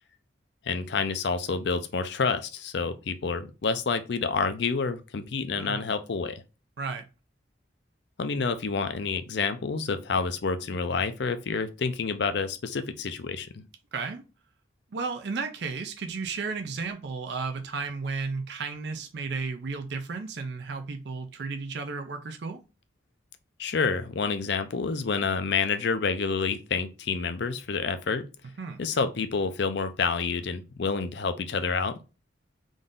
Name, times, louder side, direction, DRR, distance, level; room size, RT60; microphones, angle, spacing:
voice 1, 0.7-6.4 8.2-13.6 23.6-28.3 28.8-32.0, left 5 dB, 60° left, 0.5 m, -28 dB
voice 2, 5.5-5.9 6.8-7.0 13.9-14.2 14.9-22.6 28.6-28.8, right 4 dB, 60° right, 0.5 m, -33 dB
3.8 x 2.6 x 3.7 m
head